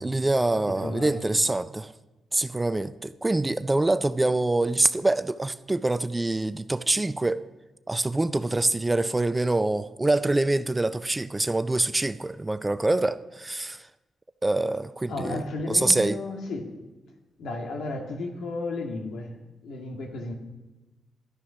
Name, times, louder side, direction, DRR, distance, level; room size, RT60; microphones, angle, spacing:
voice 1, 0.0-1.9 2.3-7.5 7.9-13.9 14.4-15.4 15.7-16.2, right 2 dB, 15° right, 0.4 m, -25 dB
voice 2, 0.6-1.4 15.1-16.8 17.4-20.3, left 2 dB, 85° left, 1.9 m, -34 dB
12.5 x 10.0 x 5.7 m
cardioid pair, 110°, 0 cm